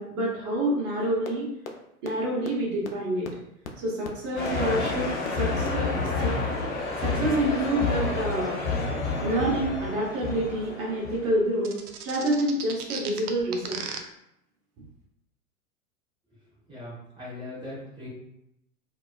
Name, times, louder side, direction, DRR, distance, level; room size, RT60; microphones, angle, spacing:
voice 1, 0.0-1.5 2.0-3.3 3.8-6.3 7.0-8.6 9.2-11.7 12.0-13.9, right 1 dB, 30° right, -5 dB, 1.0 m, -27 dB
sound 1, 1.2-1.3 1.6-1.7 2.0-2.1 2.4-2.5 2.8-2.9 3.2-3.3 3.6-3.7 4.0-4.1 4.4-4.5 4.8-4.9 5.2-5.3 5.6-5.7 6.0-6.1, left 7 dB, 70° left, 0.5 m, -36 dB
sound 2, 4.3-11.4, left 3 dB, 30° left, 1.2 m, -29 dB
sound 3, 11.6-14.0, right 7 dB, 80° right, 0.5 m, -35 dB
voice 2, 16.7-18.1, left 1 dB, 10° right, -9 dB, 1.1 m, -40 dB
2.3 x 2.3 x 2.3 m, 0.81 s
hypercardioid pair, 100°, 44 cm